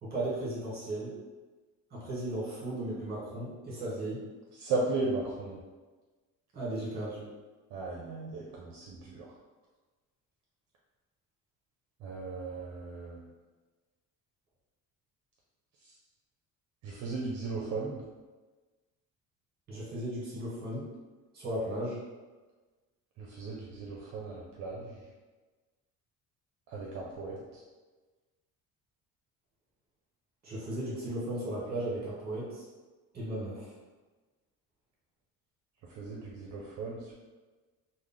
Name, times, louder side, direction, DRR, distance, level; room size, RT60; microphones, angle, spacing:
voice 1, 0.0-1.1 1.9-4.2 6.5-7.2 19.7-20.9 21.3-22.0 30.4-32.6 33.1-33.7, right 1 dB, 30° right, -6 dB, 1.3 m, -36 dB
voice 2, 4.6-5.6 7.7-9.3 12.0-13.2 16.8-18.0 23.2-24.9 26.7-27.4 36.0-37.1, right 3 dB, 60° right, -3 dB, 0.5 m, -36 dB
3.2 x 2.1 x 3.7 m, 1.3 s
cardioid pair, 175°, 32 cm